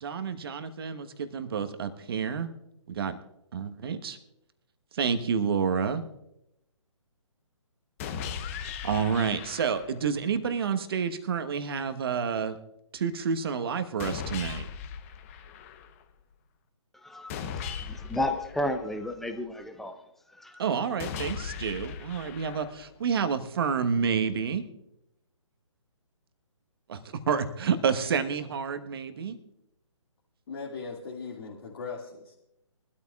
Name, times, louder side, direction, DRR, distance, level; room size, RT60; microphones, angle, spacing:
voice 1, 0.0-2.5 2.9-3.2 3.5-4.2 4.9-6.0 8.8-12.6 12.9-14.6 20.6-24.6 26.9-27.0 27.3-29.4, right 6 dB, 45° right, 9 dB, 1.2 m, -29 dB
sound 1, 8.0-10.0 14.0-16.0 17.3-19.3 21.0-23.0, left 7 dB, 25° left, 0.9 m, -38 dB
voice 2, 17.9-19.9 20.4-20.5, left 1 dB, ahead, 7 dB, 0.5 m, -31 dB
voice 3, 30.5-32.4, left 4 dB, 50° left, -4 dB, 2.2 m, -39 dB
23.0 x 13.0 x 2.4 m, 0.83 s
figure-of-eight pair, 145°, 17 cm